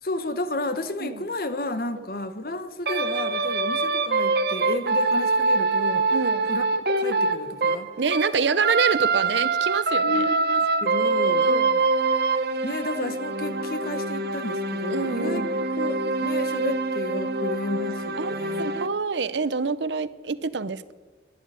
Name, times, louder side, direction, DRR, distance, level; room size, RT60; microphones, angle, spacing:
voice 1, 0.0-6.2 6.5-6.7 7.0-7.9 10.0-11.5 12.6-18.8, left 2 dB, 55° left, 11 dB, 1.1 m, -32 dB
sound 1, 2.9-8.3 8.6-18.9, right 3 dB, 60° right, 1.1 m, -24 dB
voice 2, 6.1-6.5 8.0-10.3 11.4-11.8 14.9-15.6 18.2-20.9, right 5 dB, 85° right, 16 dB, 0.7 m, -27 dB
11.5 x 11.0 x 9.6 m, 1.4 s
head